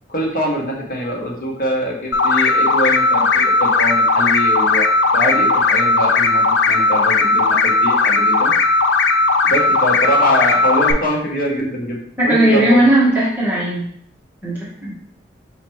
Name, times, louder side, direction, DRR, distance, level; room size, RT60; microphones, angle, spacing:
voice 1, 0.1-4.9 5.1-8.5 9.4-12.8, equal, 50° left, -2 dB, 1.0 m, -23 dB
sound 1, 2.1-10.9, left 3 dB, 90° left, 0.4 m, -16 dB
voice 2, 12.2-13.9 14.4-14.9, right 1 dB, 10° right, -8 dB, 1.2 m, -16 dB
4.9 x 3.1 x 3.1 m, 0.66 s
head